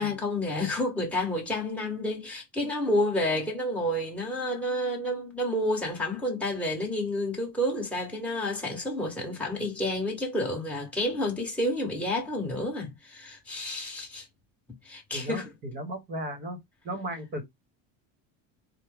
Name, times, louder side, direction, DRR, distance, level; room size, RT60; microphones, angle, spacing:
voice 1, 0.0-14.3 14.8-15.5, left 1 dB, 5° left, 1.4 m, -30 dB
voice 2, 15.1-16.6 16.8-17.4, right 1 dB, 25° right, 1.1 m, -35 dB
4.5 x 2.1 x 3.4 m
cardioid pair, 160°, 38 cm